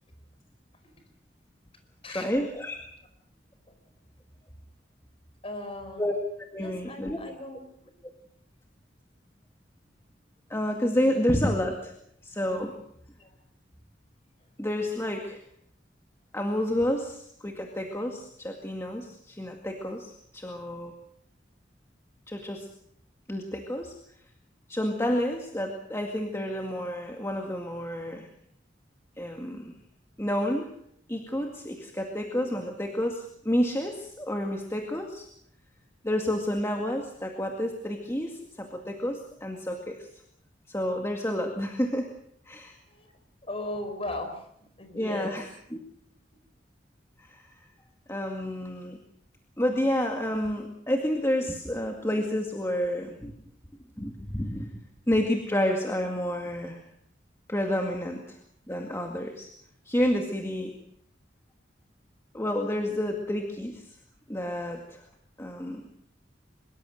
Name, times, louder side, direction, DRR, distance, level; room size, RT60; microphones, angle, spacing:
voice 1, 2.1-2.8 6.0-6.1 6.5-7.2 10.5-11.9 12.2-12.8 14.6-15.4 16.3-20.9 22.3-22.7 23.3-23.9 24.7-28.3 29.2-29.8 30.2-30.7 31.1-35.3 36.0-40.1 40.7-42.1 42.5-42.8 44.9-45.8 47.2-47.4 48.1-49.0 49.6-53.3 54.0-56.8 57.5-58.4 58.7-59.5 59.9-60.7 62.3-63.9 64.3-65.0 65.4-65.8, left 1 dB, 15° left, 2 dB, 2.1 m, -29 dB
voice 2, 5.4-6.0 6.6-7.9 13.2-13.3 42.9-43.1 43.4-44.4 44.8-45.3, left 1 dB, 30° left, 6 dB, 5.1 m, -37 dB
24.0 x 22.5 x 6.5 m, 0.70 s
head